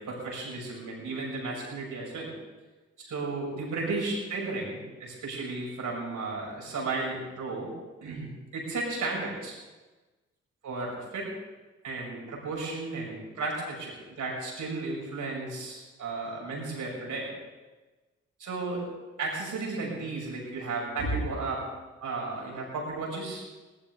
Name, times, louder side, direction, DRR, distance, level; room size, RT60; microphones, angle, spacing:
voice 1, 0.0-2.3 3.0-7.7 8.0-9.6 10.6-11.3 11.8-17.3 18.4-18.8 19.2-21.6 22.0-23.4, right 3 dB, 65° right, -2 dB, 7.0 m, -34 dB
20.0 x 18.5 x 3.9 m, 1.2 s
hypercardioid pair, 40°, 33 cm